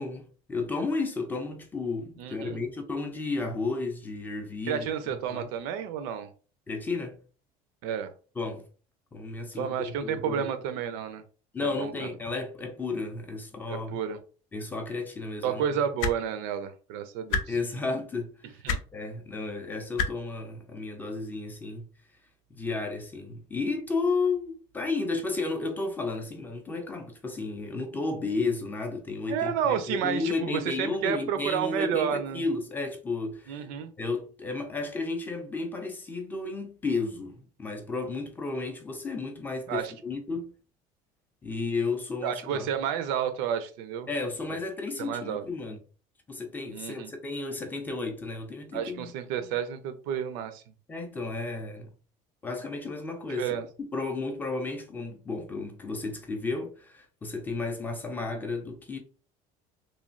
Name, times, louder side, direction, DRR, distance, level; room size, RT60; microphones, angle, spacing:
voice 1, 0.0-4.9 5.3-5.5 6.7-7.2 8.4-8.7 9.1-10.5 11.5-14.0 14.5-15.6 17.5-18.6 18.9-21.9 22.5-33.7 34.0-40.5 41.4-42.7 44.1-45.8 46.3-49.1 50.9-51.9 52.4-59.0, left 3 dB, 10° left, 0.3 m, -33 dB
voice 2, 2.2-2.6 4.7-6.3 7.8-8.1 9.6-11.2 11.6-12.1 13.7-14.2 15.4-17.4 18.6-18.8 29.3-32.4 33.5-33.9 39.7-39.9 42.2-44.1 45.0-45.4 46.7-47.1 48.7-50.6 53.4-53.6, right 8 dB, 85° right, 0.5 m, -31 dB
sound 1, 16.0-16.2 17.3-17.4 18.7-18.8 20.0-20.1 21.3-21.4, left 5 dB, 85° left, 0.4 m, -26 dB
3.1 x 2.2 x 2.4 m
cardioid pair, 170°, 15 cm